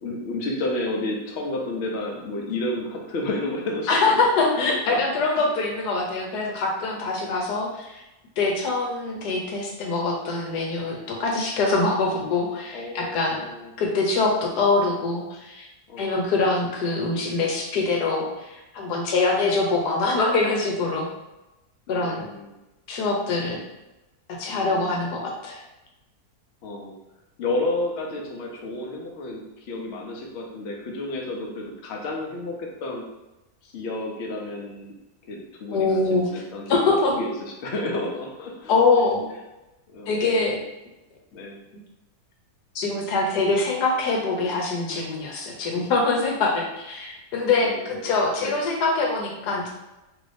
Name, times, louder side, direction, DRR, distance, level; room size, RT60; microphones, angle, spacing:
voice 1, 0.0-4.2 4.6-5.5 12.7-13.7 15.9-16.3 21.9-22.6 24.5-25.0 26.6-26.9 27.4-33.0 33.6-34.9 35.3-35.9 36.3-38.7 39.9-40.2 41.3-41.6 47.6-48.1 48.4-48.6, left 2 dB, 60° left, 0 dB, 0.7 m, -31 dB
voice 2, 3.9-8.0 8.4-13.4 13.8-15.7 16.0-21.1 21.9-22.3 22.9-23.6 24.4-25.6 35.7-36.3 36.7-37.1 38.7-39.3 40.1-40.6 42.7-49.7, left 3 dB, 85° left, 0 dB, 1.3 m, -24 dB
3.0 x 2.6 x 3.3 m, 0.99 s
omnidirectional pair, 1.7 m